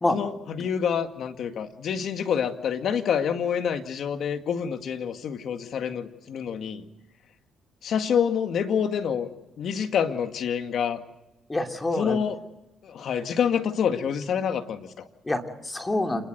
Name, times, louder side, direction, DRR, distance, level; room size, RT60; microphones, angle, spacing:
voice 1, 0.1-6.8 7.8-9.3 9.6-11.0 12.0-12.4 12.8-15.1, left 7 dB, 65° left, 8 dB, 2.0 m, -27 dB
voice 2, 11.5-12.2 15.2-16.3, left 2 dB, 20° left, 4 dB, 2.8 m, -26 dB
28.0 x 20.5 x 8.0 m, 0.93 s
cardioid pair, 90°, 0 cm